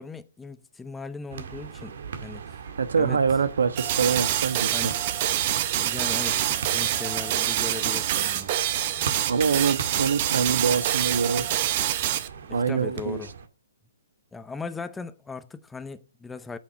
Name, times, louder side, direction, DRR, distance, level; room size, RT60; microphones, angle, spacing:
voice 1, 0.0-2.4 3.0-3.2 4.7-5.0 5.7-8.5 12.5-13.3 14.3-16.6, left 4 dB, 5° left, 0.6 m, -38 dB
sound 1, 1.3-13.5, right 6 dB, 65° right, 1.8 m, -39 dB
voice 2, 2.8-4.7 9.3-11.5 12.5-13.2, right 6 dB, 85° right, 1.4 m, -24 dB
sound 2, 3.8-12.3, right 12 dB, 40° right, 0.9 m, -26 dB
8.8 x 7.4 x 7.1 m
hypercardioid pair, 155°, 0 cm